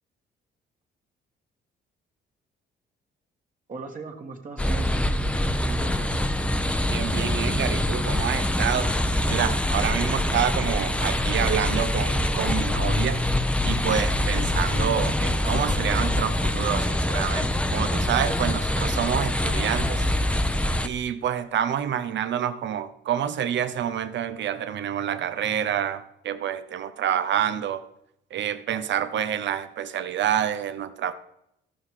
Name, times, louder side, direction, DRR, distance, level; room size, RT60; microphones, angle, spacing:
voice 1, 3.7-5.2 5.6-6.2, right 3 dB, 40° right, 2 dB, 1.9 m, -38 dB
sound 1, 4.6-20.9, left 1 dB, 5° left, 0.7 m, -24 dB
voice 2, 6.9-8.9 9.3-13.2 13.6-20.0 20.8-27.8 28.3-31.1, right 9 dB, 65° right, 12 dB, 0.9 m, -28 dB
14.0 x 5.7 x 4.9 m, 0.80 s
cardioid pair, 90°, 20 cm